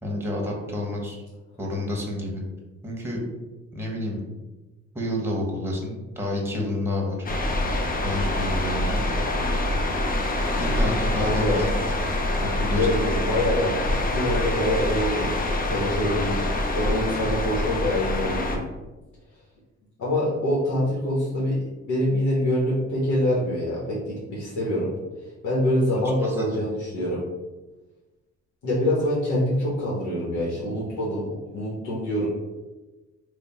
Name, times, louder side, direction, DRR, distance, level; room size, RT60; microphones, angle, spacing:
voice 1, 0.0-1.2 1.6-2.4 2.8-3.2 3.7-4.2 4.9-7.2 8.0-9.0 10.6-11.7 12.0-12.1 12.4-12.9 25.9-26.6, left 1 dB, 10° right, -1 dB, 0.9 m, -29 dB
sound 1, 7.3-18.6, left 1 dB, 30° left, 0.6 m, -25 dB
voice 2, 11.2-11.6 12.7-15.3 15.6-16.4 16.7-18.6 20.0-24.9 25.4-27.2 28.6-31.2 31.5-32.3, left 1 dB, 70° left, -6 dB, 1.1 m, -25 dB
3.3 x 2.1 x 4.2 m, 1.1 s
cardioid pair, 90°, 30 cm